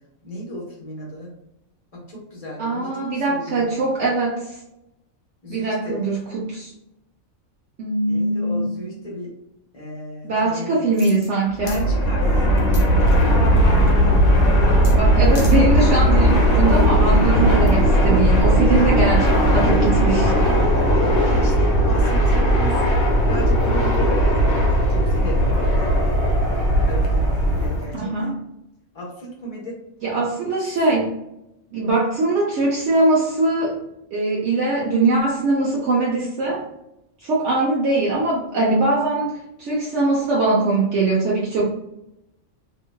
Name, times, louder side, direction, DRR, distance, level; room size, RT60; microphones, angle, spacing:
voice 1, 0.2-1.3 1.9-3.7 5.4-6.1 8.0-9.3 9.7-10.8 11.6-13.0 15.0-15.3 18.0-18.3 18.8-19.0 20.7-22.9 23.2-26.0 26.8-28.3 28.9-29.8 30.7-30.8 31.8-31.9, equal, 30° left, -4 dB, 0.9 m, -34 dB
voice 2, 2.6-4.6 5.5-6.7 7.8-8.7 10.2-11.8 15.0-20.6 27.9-28.4 30.0-31.1 31.7-33.8 34.1-36.6 37.2-41.7, right 2 dB, 65° right, -4 dB, 0.9 m, -21 dB
sound 1, 10.9-11.3 11.7-11.8 12.7-13.3 14.8-15.0 15.3-15.6 16.0-16.1, left 3 dB, 75° left, 0.3 m, -38 dB
Fixed-wing aircraft airplane, 11.5-27.9, equal, 90° left, 1.2 m, -17 dB
2.9 x 2.6 x 2.2 m, 0.87 s
omnidirectional pair, 1.4 m